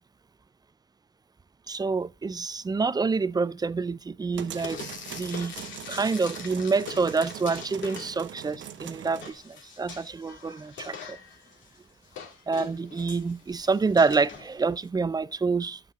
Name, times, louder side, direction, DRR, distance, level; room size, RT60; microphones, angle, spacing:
voice 1, 1.7-4.8 5.1-5.5 5.9-11.2 12.5-15.8, right 4 dB, 20° right, 0.4 m, -27 dB
sound 1, 4.3-9.3, right 10 dB, 70° right, 1.0 m, -42 dB
Frying (food), 4.5-8.5 8.9-14.9, left 6 dB, 70° left, 2.2 m, -43 dB
9.2 x 7.5 x 3.6 m
cardioid pair, 90°, 20 cm